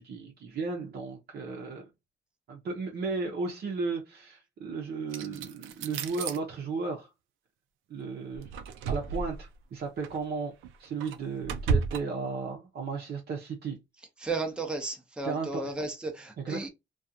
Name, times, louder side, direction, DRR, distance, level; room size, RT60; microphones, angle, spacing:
voice 1, 0.0-1.9 2.5-7.1 7.9-8.5 8.9-10.5 10.8-13.8 15.2-15.7 16.4-16.7, right 4 dB, 55° right, 0.7 m, -34 dB
sound 1, 5.1-6.4 8.3-9.5 10.0-10.2 10.6-12.0, right 4 dB, 85° right, 0.4 m, -32 dB
voice 2, 14.2-16.7, right 3 dB, 5° right, 0.7 m, -34 dB
2.4 x 2.3 x 2.7 m
cardioid pair, 90°, 20 cm